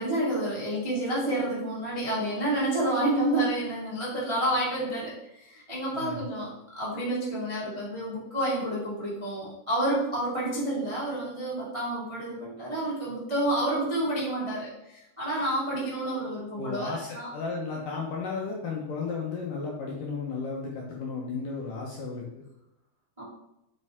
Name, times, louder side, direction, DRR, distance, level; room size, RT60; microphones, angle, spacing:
voice 1, 0.0-6.5 6.7-17.3 23.2-23.3, right 1 dB, 15° right, -7 dB, 1.0 m, -29 dB
voice 2, 16.6-22.4, left 4 dB, 70° left, -3 dB, 2.2 m, -34 dB
8.1 x 5.4 x 3.6 m, 0.88 s
omnidirectional pair, 4.9 m